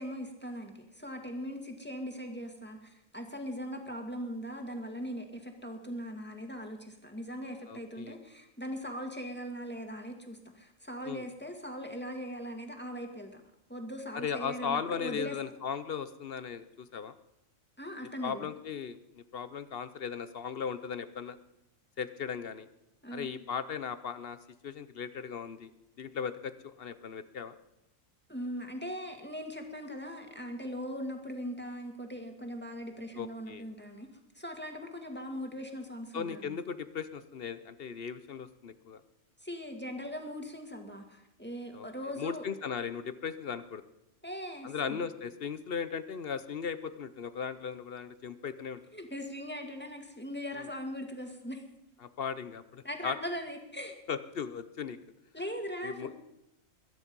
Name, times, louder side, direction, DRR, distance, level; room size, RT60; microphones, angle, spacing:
voice 1, 0.0-13.4 13.7-15.4 17.8-18.5 23.0-23.3 28.3-34.1 34.4-36.6 39.4-42.4 44.2-45.0 48.9-51.6 52.8-54.0 55.3-56.1, equal, 10° left, 3 dB, 1.9 m, -40 dB
voice 2, 7.7-8.1 11.0-11.3 14.1-17.1 18.2-21.4 22.0-22.7 23.1-24.4 24.6-25.7 26.0-27.6 33.1-33.6 36.1-39.0 41.7-41.9 42.2-43.8 44.6-48.8 50.6-50.7 52.0-53.2 54.1-55.0 55.8-56.1, left 6 dB, 50° left, 13 dB, 0.8 m, -37 dB
22.0 x 9.8 x 5.4 m, 0.85 s
omnidirectional pair, 1.4 m